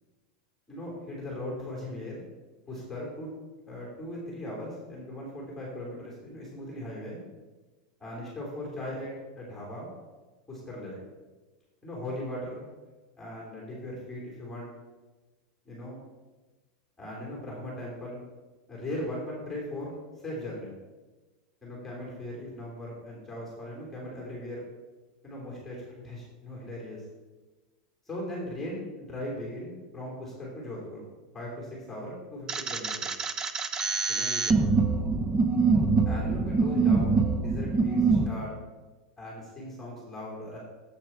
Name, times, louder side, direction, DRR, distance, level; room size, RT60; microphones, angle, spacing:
voice 1, 0.7-2.2 2.7-3.3 3.7-7.2 8.0-9.9 10.5-11.0 11.8-12.7 13.2-14.7 15.6-16.0 17.0-18.2 18.7-20.0 20.2-20.8 21.6-24.6 25.2-27.0 28.0-31.0 31.3-33.1 34.1-34.6 36.0-38.5 39.2-40.6, left 1 dB, 5° left, -4 dB, 2.9 m, -38 dB
sound 1, 32.5-38.3, right 4 dB, 15° right, 0.5 m, -25 dB
8.8 x 7.7 x 4.3 m, 1.2 s
supercardioid pair, 160°, 4 cm